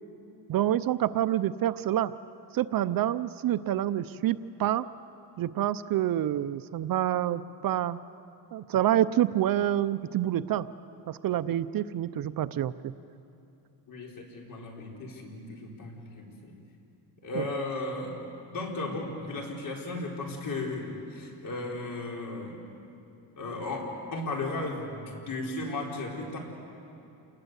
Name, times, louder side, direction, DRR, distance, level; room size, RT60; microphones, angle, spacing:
voice 1, 0.5-2.1 2.5-4.9 5.4-8.0 8.5-10.7 11.1-12.9 17.4-17.5, right 12 dB, 55° right, 14 dB, 0.6 m, -27 dB
voice 2, 13.9-16.5 17.2-18.2 18.5-22.6 23.4-26.4, left 2 dB, 50° left, -1 dB, 4.7 m, -35 dB
28.0 x 20.5 x 8.2 m, 2.7 s
cardioid pair, 135°, 43 cm